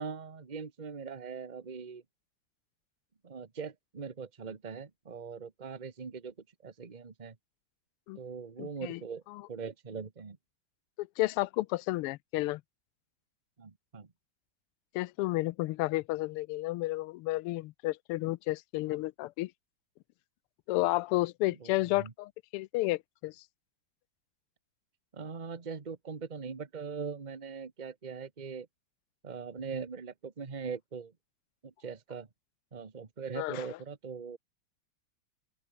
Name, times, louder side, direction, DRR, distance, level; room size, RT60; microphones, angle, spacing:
voice 1, 0.0-2.0 3.2-6.3 6.6-7.4 8.1-9.2 9.5-10.4 13.6-14.1 21.6-22.1 25.1-28.7 29.2-31.1 31.6-32.3 32.7-34.4, right 5 dB, 25° right, 1.4 m, -41 dB
voice 2, 8.6-9.0 11.0-12.6 14.9-19.5 20.7-23.3 33.4-33.6, left 19 dB, 90° left, 1.5 m, -31 dB
open air
omnidirectional pair, 2.4 m